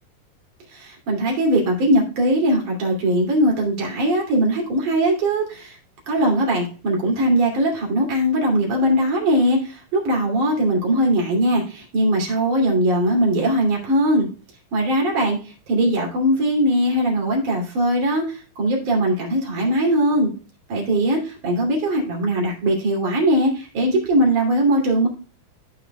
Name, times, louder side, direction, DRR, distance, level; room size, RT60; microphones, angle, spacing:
voice 1, 0.7-5.8 6.1-14.3 14.7-20.3 20.7-25.1, right 1 dB, 45° right, -1 dB, 3.7 m, -20 dB
15.0 x 5.6 x 2.3 m, 0.37 s
omnidirectional pair, 5.6 m